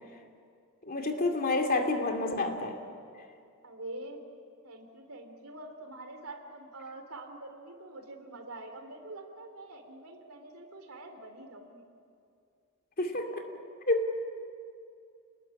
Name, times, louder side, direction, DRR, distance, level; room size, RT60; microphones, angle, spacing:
voice 1, 0.8-2.8 13.0-13.5 13.9-14.1, left 2 dB, 40° left, 4 dB, 2.5 m, -29 dB
voice 2, 3.6-4.2 4.6-11.8, right 2 dB, 70° right, 6 dB, 3.5 m, -45 dB
28.5 x 20.5 x 9.9 m, 2.4 s
head